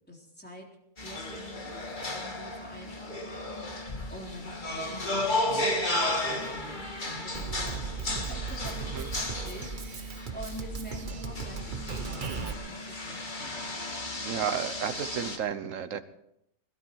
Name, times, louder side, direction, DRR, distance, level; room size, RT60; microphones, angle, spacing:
voice 1, 0.1-0.7 1.0-13.8, equal, 5° left, -1 dB, 3.6 m, -46 dB
sound 1, 1.0-15.4, left 1 dB, 30° left, 1.9 m, -34 dB
Drum kit, 7.3-12.5, right 5 dB, 35° right, 1.0 m, -37 dB
voice 2, 14.2-16.0, right 8 dB, 60° right, 11 dB, 1.4 m, -32 dB
21.5 x 12.0 x 4.7 m, 0.79 s
omnidirectional pair, 1.6 m